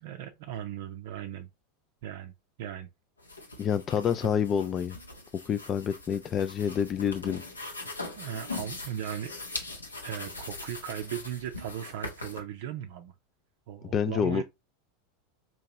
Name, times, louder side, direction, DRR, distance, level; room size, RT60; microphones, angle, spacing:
voice 1, 0.0-1.5 2.0-2.3 2.6-2.9 8.2-9.3 10.0-13.1 13.7-14.4, right 10 dB, 60° right, 0.4 m, -37 dB
sound 1, 3.2-12.4, left 2 dB, 90° left, 0.8 m, -41 dB
voice 2, 3.6-5.0 5.5-7.4 13.9-14.4, left 8 dB, 35° left, 0.4 m, -28 dB
4.4 x 2.8 x 2.8 m
figure-of-eight pair, 85°, 0 cm